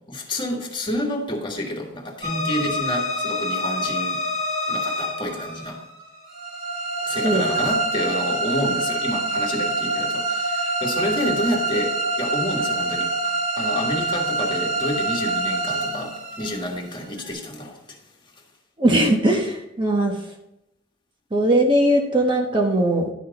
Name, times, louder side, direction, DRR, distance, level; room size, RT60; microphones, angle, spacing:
voice 1, 0.1-4.2 4.7-5.8 7.0-18.0, left 1 dB, 25° left, 1 dB, 1.7 m, -29 dB
sound 1, 2.2-17.3, right 2 dB, 55° right, 3.6 m, -26 dB
voice 2, 18.8-20.2 21.3-23.1, right 1 dB, 25° right, 2 dB, 1.0 m, -19 dB
11.5 x 6.4 x 4.0 m, 0.87 s
head